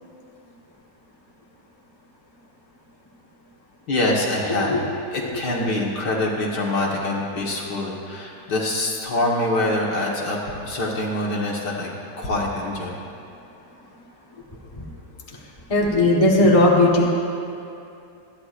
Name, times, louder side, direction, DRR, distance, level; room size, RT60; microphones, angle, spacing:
voice 1, 3.9-4.7 5.1-11.9 12.2-13.0, left 1 dB, 65° left, -3 dB, 2.2 m, -25 dB
voice 2, 4.5-4.9 14.7-14.9 15.3-15.4 15.7-17.1, left 2 dB, 20° left, -3 dB, 1.3 m, -18 dB
26.0 x 9.9 x 2.6 m, 2.7 s
omnidirectional pair, 1.9 m